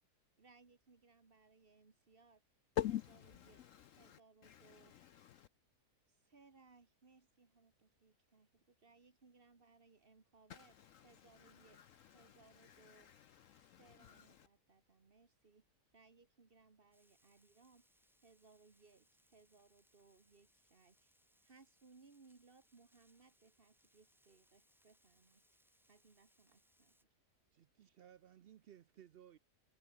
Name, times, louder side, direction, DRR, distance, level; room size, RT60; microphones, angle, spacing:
voice 1, 0.4-2.4 2.9-5.0 6.1-10.8 11.0-11.8 12.1-13.1 13.6-15.7 15.9-25.6 25.9-27.1, right 4 dB, 35° right, 1.9 m, -67 dB
voice 2, 2.8-5.5 10.5-14.5, left 11 dB, 65° left, 0.8 m, -46 dB
Frying (food), 16.9-27.0, equal, ahead, 2.9 m, -76 dB
voice 3, 27.5-29.4, right 10 dB, 85° right, 0.5 m, -60 dB
omnidirectional pair, 1.7 m